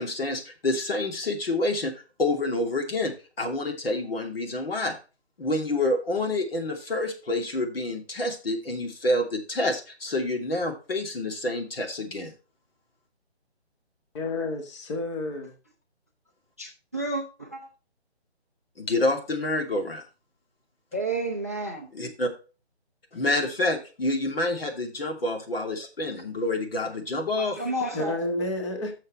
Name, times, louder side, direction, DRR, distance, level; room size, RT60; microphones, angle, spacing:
voice 1, 0.0-1.9 2.2-3.1 3.4-4.9 5.4-12.3 18.8-20.0 21.9-22.3 23.1-27.6, left 2 dB, 60° left, 2.7 m, -28 dB
voice 2, 14.1-15.5 27.9-28.9, left 2 dB, 25° left, 1.6 m, -30 dB
voice 3, 16.6-17.6 20.9-21.9 27.4-28.1, right 2 dB, 15° right, 0.4 m, -31 dB
12.0 x 6.7 x 3.1 m
figure-of-eight pair, 150°, 33 cm